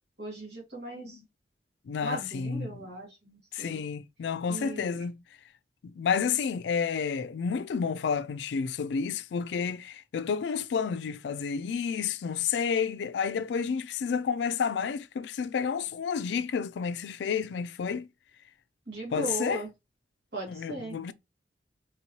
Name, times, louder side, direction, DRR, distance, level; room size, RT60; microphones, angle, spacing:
voice 1, 0.2-1.2 2.0-3.8 4.5-5.0 18.9-19.7 20.3-21.0, right 2 dB, 65° right, 2.0 m, -38 dB
voice 2, 1.9-2.8 3.5-5.2 5.8-18.1 19.1-19.6 20.5-21.1, left 6 dB, 75° left, 0.3 m, -30 dB
4.4 x 3.0 x 2.8 m
head